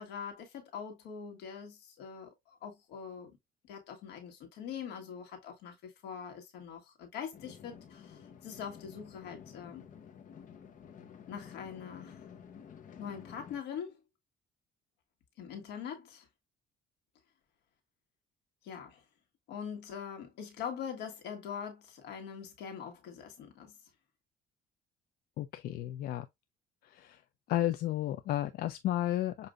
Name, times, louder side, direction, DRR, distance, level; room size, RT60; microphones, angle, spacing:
voice 1, 0.0-2.3 2.6-3.4 3.7-9.8 11.3-12.2 13.0-14.0 15.4-16.3 18.6-19.0 19.5-23.7, left 7 dB, 90° left, 1.6 m, -43 dB
sound 1, 7.3-13.6, left 7 dB, 50° left, 0.8 m, -52 dB
voice 2, 25.4-26.3 26.8-27.2 27.5-29.5, left 13 dB, 65° left, 0.5 m, -33 dB
6.8 x 2.6 x 2.3 m
cardioid pair, 110°, 17 cm